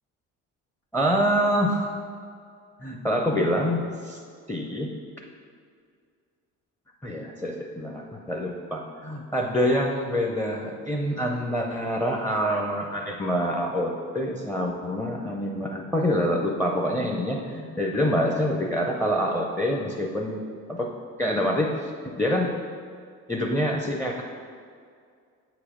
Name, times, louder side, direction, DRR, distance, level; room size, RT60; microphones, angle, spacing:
voice 1, 0.9-2.0 2.8-4.2 4.5-4.9 7.0-20.9 21.2-22.5 23.3-24.2, equal, 5° left, 0 dB, 0.5 m, -26 dB
8.1 x 3.0 x 4.9 m, 2.2 s
cardioid pair, 85°, 32 cm